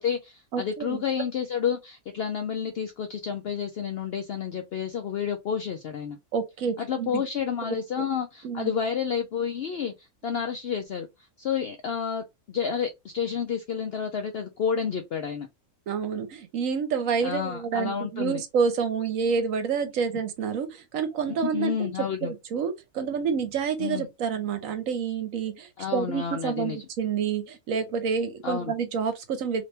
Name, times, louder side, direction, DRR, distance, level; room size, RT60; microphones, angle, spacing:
voice 1, 0.0-6.2 6.8-15.5 17.2-18.4 21.3-22.3 23.8-24.1 25.8-26.8 28.4-28.7, left 7 dB, 70° left, 0.6 m, -30 dB
voice 2, 0.5-1.0 6.3-7.2 7.7-7.8 8.4-8.7 15.9-21.9 22.2-29.6, right 6 dB, 70° right, 1.1 m, -28 dB
3.3 x 2.9 x 2.7 m
omnidirectional pair, 1.5 m